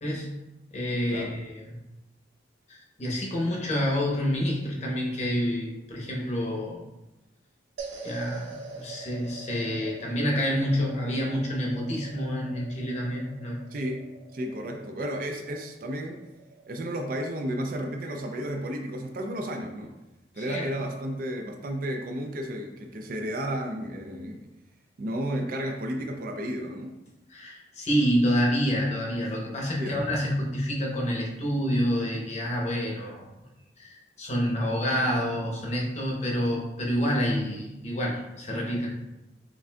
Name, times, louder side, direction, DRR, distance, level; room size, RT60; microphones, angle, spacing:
voice 1, 0.7-1.6 2.7-6.8 8.0-13.6 20.4-20.7 27.3-33.2 33.8-38.9, equal, 35° left, -2 dB, 0.7 m, -28 dB
sound 1, 7.8-18.2, right 5 dB, 85° right, 0.8 m, -44 dB
voice 2, 13.7-14.0 14.3-16.2 16.7-19.9 20.3-24.4 25.0-26.9 29.8-30.0, right 1 dB, 45° right, 3 dB, 0.4 m, -32 dB
5.8 x 2.5 x 2.2 m, 0.98 s
head